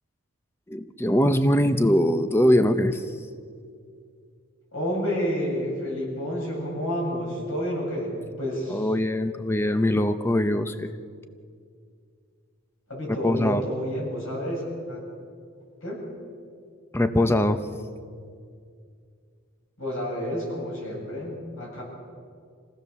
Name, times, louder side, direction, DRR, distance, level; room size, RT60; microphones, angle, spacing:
voice 1, 0.7-3.1 8.7-10.9 13.2-13.6 16.9-17.6, left 1 dB, 10° left, 9 dB, 0.7 m, -22 dB
voice 2, 4.7-8.9 12.9-15.0 15.8-16.1 19.8-21.8, equal, 65° left, -2 dB, 7.9 m, -30 dB
28.0 x 16.5 x 6.8 m, 2.3 s
head